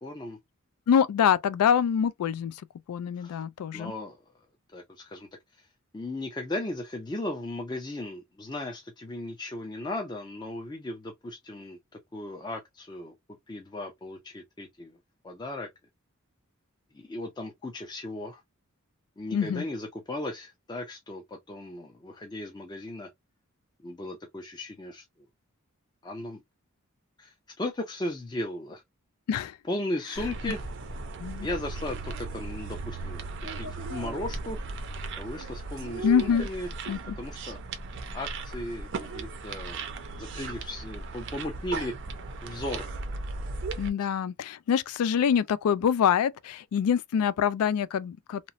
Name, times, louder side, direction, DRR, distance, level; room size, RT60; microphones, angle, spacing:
voice 1, 0.0-0.4 3.2-3.4 3.7-4.2 4.7-5.3 5.6-5.7 5.9-11.8 12.1-13.1 13.5-15.0 15.2-15.7 16.9-18.4 19.2-23.1 23.8-25.0 26.0-26.4 27.2-28.8 29.7-30.6 31.4-33.3 33.6-34.6 35.2-36.7 37.2-37.6 38.1-39.8 40.2-42.0 42.4-42.9 44.0-44.1, left 1 dB, 20° left, 0.4 m, -36 dB
voice 2, 0.9-2.6 2.9-3.9 19.3-19.6 29.3-29.6 31.2-31.5 36.0-36.5 36.9-37.2 43.8-48.5, left 8 dB, 90° left, 0.3 m, -25 dB
sound 1, 30.2-43.9, right 3 dB, 55° right, 0.5 m, -37 dB
2.9 x 2.0 x 2.4 m
head